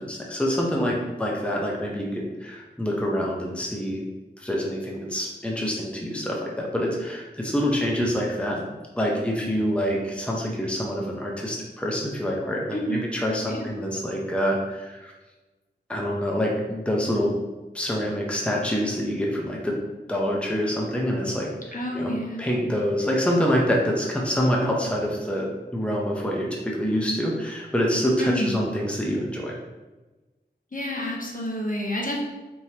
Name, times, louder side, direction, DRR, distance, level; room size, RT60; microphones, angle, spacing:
voice 1, 0.0-4.0 4.4-8.7 8.9-15.1 15.9-17.3 17.7-19.8 20.1-21.5 21.9-22.1 22.4-29.5, equal, 5° left, -2 dB, 0.7 m, -26 dB
voice 2, 12.7-13.0 13.5-13.7 21.7-22.5 28.2-28.6 30.7-32.2, left 1 dB, 50° left, -1 dB, 0.8 m, -29 dB
4.5 x 3.3 x 2.8 m, 1.2 s
wide cardioid pair, 60°, 18 cm